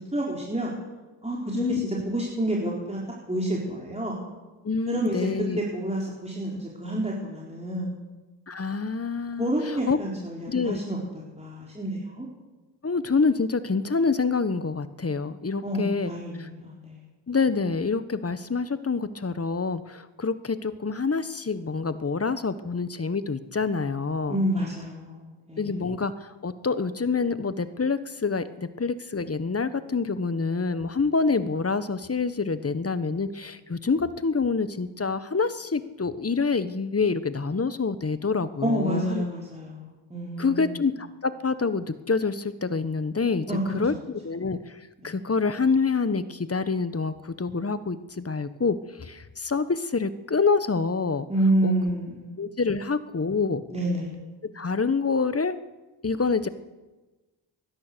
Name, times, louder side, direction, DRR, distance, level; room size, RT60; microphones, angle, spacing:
voice 1, 0.1-0.7 1.2-3.0 3.3-4.2 4.9-5.3 5.6-8.0 9.4-12.3 15.6-17.0 24.3-25.8 38.6-40.8 43.5-43.7 45.0-45.1 51.3-52.3 53.7-54.1, right 1 dB, 15° right, -4 dB, 4.3 m, -29 dB
voice 2, 1.5-1.9 4.6-5.6 8.5-10.0 10.5-10.8 12.8-16.1 16.4-16.5 17.3-24.4 25.6-39.3 40.4-43.5 43.7-44.8 45.0-51.3 51.6-51.7 52.4-53.6 54.5-55.6 56.0-56.5, left 4 dB, 30° left, 13 dB, 1.3 m, -27 dB
17.0 x 11.5 x 6.9 m, 1.2 s
supercardioid pair, 40°, 47 cm